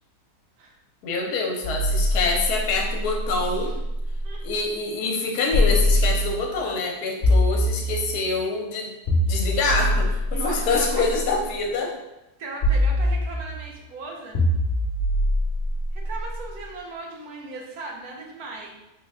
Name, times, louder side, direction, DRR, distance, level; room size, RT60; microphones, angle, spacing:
voice 1, 1.0-3.7 4.4-8.9 9.3-11.9, left 3 dB, 75° left, 1 dB, 1.2 m, -26 dB
sound 1, 1.6-4.4 5.5-6.6 7.2-8.3 9.1-11.3 12.6-13.7 14.3-16.5, left 1 dB, 40° left, 0.8 m, -23 dB
voice 2, 10.3-11.2 12.4-14.4 15.9-18.7, right 3 dB, 70° right, 0 dB, 1.1 m, -37 dB
3.9 x 2.2 x 3.4 m, 0.97 s
omnidirectional pair, 1.7 m